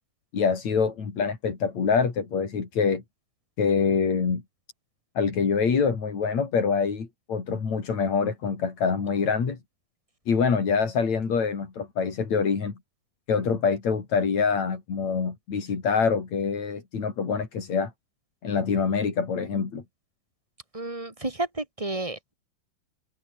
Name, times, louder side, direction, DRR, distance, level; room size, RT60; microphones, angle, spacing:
voice 1, 0.3-3.0 3.6-4.4 5.1-9.6 10.3-12.7 13.3-17.9 18.4-19.8, left 5 dB, 50° left, 5.0 m, -25 dB
voice 2, 20.7-22.3, right 2 dB, 10° right, 2.9 m, -31 dB
omnidirectional pair, 4.0 m